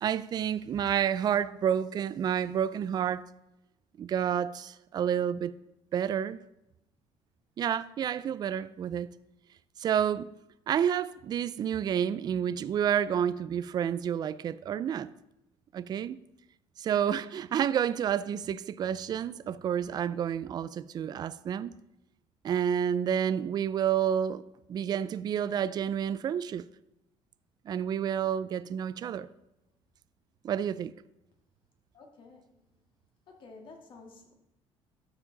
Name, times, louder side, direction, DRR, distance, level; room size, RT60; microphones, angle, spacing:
voice 1, 0.0-3.2 4.0-5.5 5.9-6.4 7.6-9.1 9.8-10.3 10.7-15.1 15.7-16.2 16.8-21.7 22.4-24.4 24.7-26.6 27.7-29.3 30.4-30.9, right 9 dB, 40° right, 0.4 m, -29 dB
voice 2, 31.9-32.5 33.3-34.3, left 3 dB, 50° left, 1.9 m, -51 dB
13.0 x 4.8 x 4.0 m
cardioid pair, 130°, 11 cm